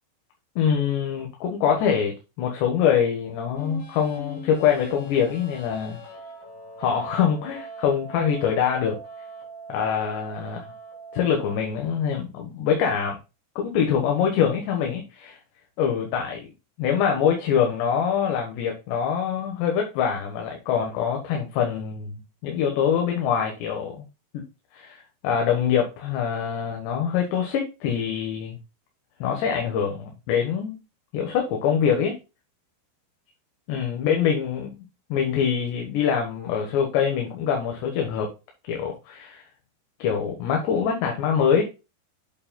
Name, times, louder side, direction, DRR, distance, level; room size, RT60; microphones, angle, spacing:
voice 1, 0.6-6.0 6.8-9.0 9.7-10.7 11.1-13.2 13.6-15.4 15.8-16.5 16.8-24.1 24.3-24.4 24.7-28.6 29.2-30.8 31.1-32.2 33.7-34.8 35.1-38.3 38.7-39.4 40.0-41.6, left 7 dB, 85° left, 1 dB, 3.4 m, -24 dB
sound 1, 3.5-11.6, right 1 dB, 60° left, 4.7 m, -41 dB
8.4 x 7.2 x 2.2 m, 0.28 s
omnidirectional pair, 4.9 m